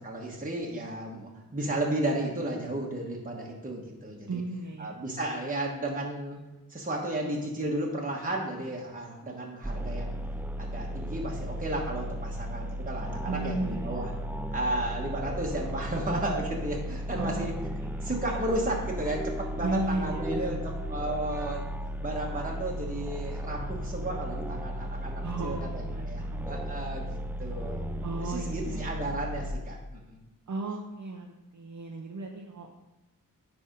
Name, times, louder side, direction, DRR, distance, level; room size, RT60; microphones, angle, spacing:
voice 1, 0.0-4.4 4.8-6.4 6.7-10.2 10.6-14.1 14.5-17.5 18.0-21.6 22.0-27.8 28.2-30.2, right 1 dB, 25° right, -2 dB, 1.2 m, -33 dB
voice 2, 4.3-4.9 13.3-14.0 17.1-18.1 19.6-20.6 25.2-26.5 28.0-28.9 30.5-32.7, right 2 dB, 60° right, 1 dB, 0.8 m, -35 dB
sound 1, 9.6-29.5, equal, 5° right, 0.3 m, -35 dB
sound 2, 18.5-29.5, right 1 dB, 20° left, 2.2 m, -52 dB
9.9 x 3.5 x 5.1 m, 1.1 s
wide cardioid pair, 95°, 34 cm